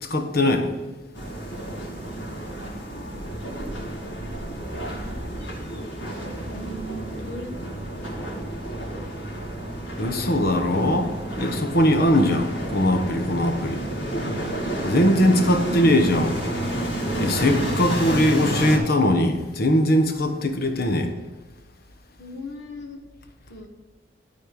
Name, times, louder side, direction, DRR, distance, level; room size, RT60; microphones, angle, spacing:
voice 1, 0.0-0.7 10.0-11.1 11.4-13.8 14.8-16.4 17.2-21.1, left 1 dB, 55° left, 5 dB, 1.1 m, -21 dB
sound 1, 1.1-18.8, right 1 dB, 85° left, 2.7 m, -30 dB
voice 2, 2.7-4.5 4.8-5.2 5.7-6.0 6.5-7.7 15.4-15.9 20.3-20.8 22.2-23.0 23.5-23.7, left 1 dB, 70° left, 3 dB, 1.4 m, -40 dB
12.5 x 4.4 x 6.5 m, 1.2 s
head